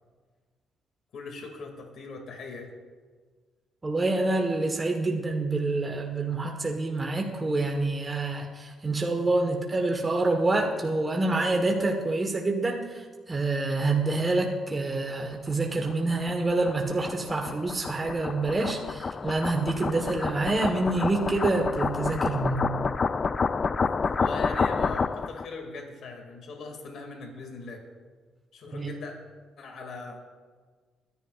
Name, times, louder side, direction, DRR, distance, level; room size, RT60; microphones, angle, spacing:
voice 1, 1.1-2.7 24.2-27.8 28.5-29.1 29.6-30.2, left 3 dB, 70° left, 2 dB, 2.3 m, -40 dB
voice 2, 3.8-13.0 13.3-22.7 28.7-28.9, right 2 dB, 25° right, 2 dB, 1.3 m, -27 dB
sound 1, 15.5-25.4, left 5 dB, 35° left, 0.3 m, -29 dB
23.5 x 11.0 x 2.5 m, 1.5 s
cardioid pair, 90°, 0 cm